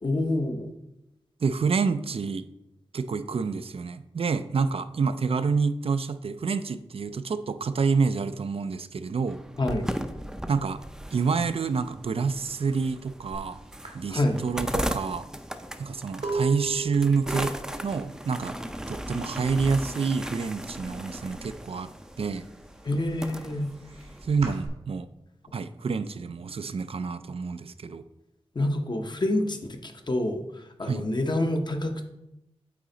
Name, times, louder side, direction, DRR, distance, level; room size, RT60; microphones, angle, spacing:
voice 1, 0.0-0.7 9.6-9.9 14.1-14.4 22.8-23.7 28.5-32.0, left 1 dB, 45° left, 5 dB, 0.8 m, -27 dB
voice 2, 1.4-2.4 2.9-9.4 10.5-10.8 11.1-13.6 13.9-15.3 15.8-17.5 17.8-18.6 18.9-21.9 22.2-22.5 24.2-25.1 25.5-28.0 30.8-31.1, right 5 dB, 65° right, 11 dB, 0.4 m, -28 dB
sound 1, 9.3-24.6, equal, 5° right, 0.5 m, -37 dB
sound 2, 13.3-13.5 13.8-19.5 19.8-20.3 20.6-21.7 22.1-24.7, right 4 dB, 85° right, 1.5 m, -37 dB
8.6 x 4.2 x 3.9 m, 0.88 s
wide cardioid pair, 100°, 10 cm